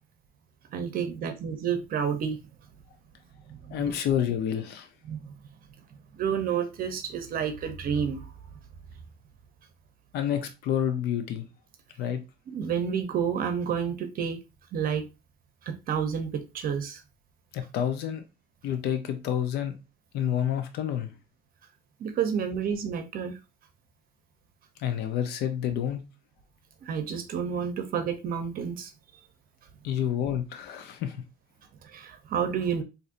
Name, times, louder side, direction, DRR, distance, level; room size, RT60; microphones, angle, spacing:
voice 1, 0.7-2.4 3.5-3.9 5.0-5.3 6.1-8.3 12.5-14.4 14.7-15.0 15.6-17.0 22.0-23.4 26.8-29.2 31.8-32.8, right 7 dB, 60° right, 0.7 m, -30 dB
voice 2, 3.7-4.9 10.1-11.5 12.0-12.2 17.5-18.2 18.6-19.7 20.1-21.1 24.8-26.0 29.8-31.2, left 9 dB, 80° left, 0.7 m, -29 dB
4.2 x 2.7 x 2.5 m
cardioid pair, 110°, 17 cm